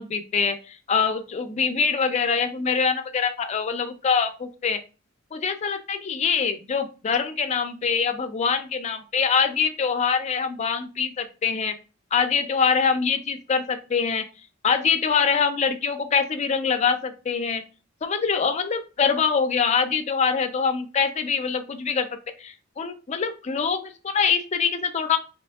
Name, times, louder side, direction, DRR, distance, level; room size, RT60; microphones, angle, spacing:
voice 1, 0.0-4.8 5.3-11.7 12.1-14.2 14.6-17.6 18.0-22.1 22.4-25.2, left 6 dB, 35° left, 7 dB, 0.4 m, -24 dB
3.4 x 2.9 x 2.3 m, 0.33 s
head